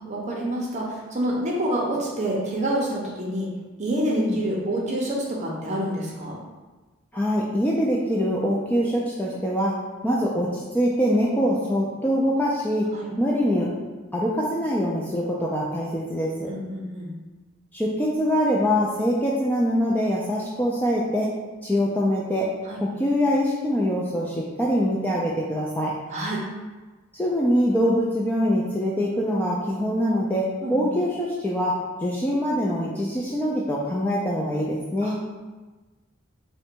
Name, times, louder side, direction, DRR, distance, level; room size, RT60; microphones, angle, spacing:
voice 1, 0.0-3.5 3.8-6.4 12.9-13.1 16.5-17.1 22.7-22.8 26.1-26.4 30.6-30.9 35.0-35.1, right 1 dB, 35° right, -3 dB, 0.6 m, -27 dB
voice 2, 4.1-4.4 7.1-9.8 10.0-12.9 13.2-13.7 14.1-16.5 17.7-21.3 21.6-22.5 22.8-25.9 27.1-35.1, equal, 10° left, -4 dB, 0.3 m, -24 dB
3.8 x 2.2 x 4.4 m, 1.3 s
head